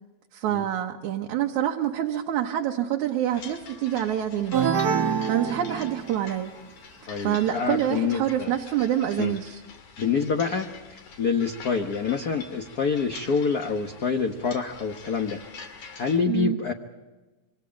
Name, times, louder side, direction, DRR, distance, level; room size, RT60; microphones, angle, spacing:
voice 1, 0.3-6.5 7.2-9.6 16.3-16.6, right 11 dB, 85° right, 1 dB, 2.7 m, -27 dB
sound 1, 3.3-16.2, left 5 dB, 80° left, 3.9 m, -45 dB
sound 2, 4.5-6.4, right 7 dB, 60° right, 1.0 m, -26 dB
voice 2, 7.1-8.5 9.2-9.3 10.0-15.4 16.0-16.7, left 5 dB, 50° left, 3 dB, 1.2 m, -26 dB
27.0 x 25.0 x 5.2 m, 1.2 s
omnidirectional pair, 3.3 m